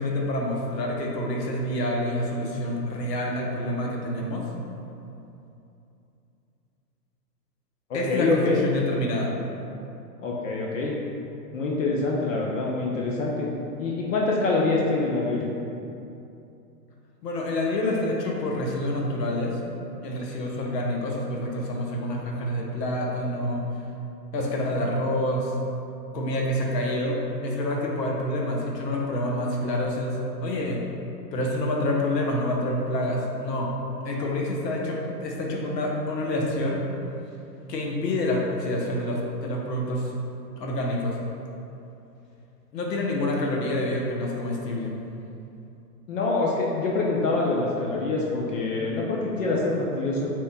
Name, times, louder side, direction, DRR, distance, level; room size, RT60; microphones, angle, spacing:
voice 1, 0.0-4.5 7.9-9.3 17.2-19.6 20.0-23.7 24.3-25.5 26.1-30.8 31.3-33.7 34.0-36.8 37.7-40.1 40.6-41.2 42.7-44.9, left 1 dB, 75° left, -1 dB, 1.0 m, -27 dB
voice 2, 7.9-8.6 10.2-11.0 11.5-13.5 13.8-15.5 46.1-50.3, left 3 dB, 50° left, -3 dB, 0.6 m, -25 dB
5.1 x 3.6 x 2.2 m, 2.8 s
hypercardioid pair, 135°, 50 cm